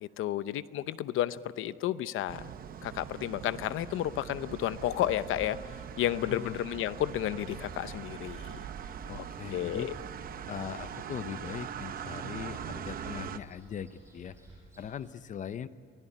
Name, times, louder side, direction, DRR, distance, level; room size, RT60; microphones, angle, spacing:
voice 1, 0.0-2.5 2.8-5.6 6.0-8.6 9.1-9.2 9.5-9.9, left 12 dB, 75° left, 15 dB, 0.8 m, -32 dB
sound 1, 2.3-13.4, right 8 dB, 45° right, 0.8 m, -42 dB
sound 2, 4.6-15.2, right 1 dB, 15° right, 7.7 m, -54 dB
voice 2, 9.1-9.9 10.5-14.4 14.8-15.7, left 8 dB, 35° left, 14 dB, 0.7 m, -40 dB
25.0 x 17.0 x 10.0 m, 2.5 s
cardioid pair, 170°, 21 cm